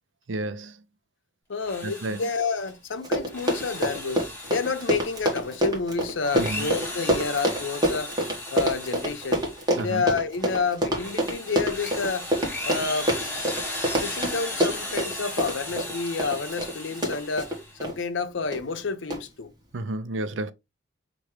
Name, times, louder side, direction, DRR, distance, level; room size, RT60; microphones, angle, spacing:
voice 1, 0.3-0.8 1.8-2.3 6.3-6.7 9.8-10.1 19.7-20.5, right 2 dB, 85° right, 0.6 m, -31 dB
voice 2, 1.5-4.2 4.5-8.1 8.5-9.5 9.8-12.3 12.6-13.2 14.0-17.5 17.8-19.5, left 4 dB, 85° left, 0.6 m, -29 dB
Drill, 1.5-2.7 3.2-5.6 6.1-9.9 10.3-17.8, left 1 dB, 10° left, 1.8 m, -36 dB
Run, 2.7-2.8 3.0-18.0 18.5-18.8 19.1-19.2, right 1 dB, 20° right, 1.3 m, -26 dB
5.8 x 2.6 x 3.1 m
head